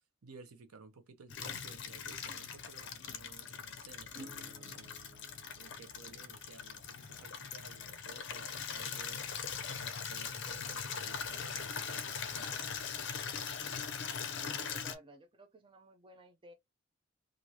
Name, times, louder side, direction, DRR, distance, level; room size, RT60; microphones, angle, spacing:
voice 1, 0.2-5.0 5.6-9.3 9.8-12.8, right 4 dB, 85° right, 0.6 m, -56 dB
Water tap faucet / Liquid, 1.3-15.0, left 6 dB, 55° left, 0.5 m, -41 dB
Acoustic guitar / Strum, 4.1-9.6, right 1 dB, 65° right, 1.1 m, -57 dB
voice 2, 14.5-16.5, right 1 dB, 25° right, 0.4 m, -56 dB
3.0 x 2.5 x 2.7 m
head